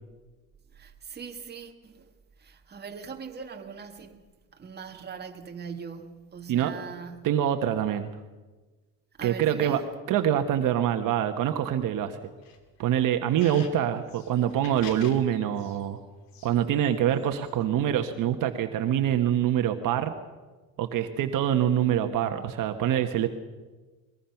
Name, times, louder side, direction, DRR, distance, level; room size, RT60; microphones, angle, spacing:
voice 1, 0.7-2.1 2.4-4.2 4.5-7.3 9.2-9.9 13.6-13.9 22.2-22.5, right 6 dB, 30° right, 1.9 m, -41 dB
voice 2, 7.2-8.1 9.2-9.8 10.1-12.2 12.8-16.0 16.4-20.1 20.8-23.3, right 10 dB, 65° right, 1.4 m, -25 dB
sound 1, 12.4-13.7 14.1-15.8 16.3-17.6, left 7 dB, 75° left, 2.6 m, -48 dB
22.5 x 22.0 x 5.9 m
cardioid pair, 125°, 35 cm